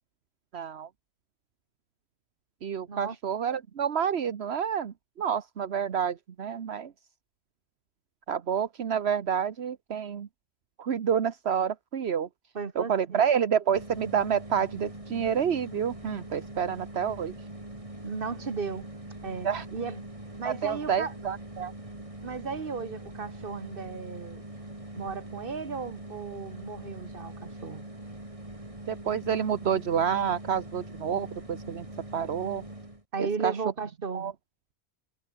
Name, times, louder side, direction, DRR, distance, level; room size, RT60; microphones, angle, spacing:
voice 1, 0.5-0.9 2.6-6.9 8.3-10.3 10.8-12.3 12.7-17.3 19.4-19.7 20.4-21.7 28.9-31.9 32.1-32.6 33.2-33.6 34.1-34.3, right 8 dB, 75° right, 1.3 m, -29 dB
voice 2, 12.6-13.2 18.0-18.9 19.2-20.0 20.4-21.1 22.2-24.5 25.0-27.8 33.1-34.3, right 5 dB, 55° right, 1.8 m, -35 dB
sound 1, 13.7-33.0, right 1 dB, 30° right, 4.1 m, -43 dB
omnidirectional pair, 1.1 m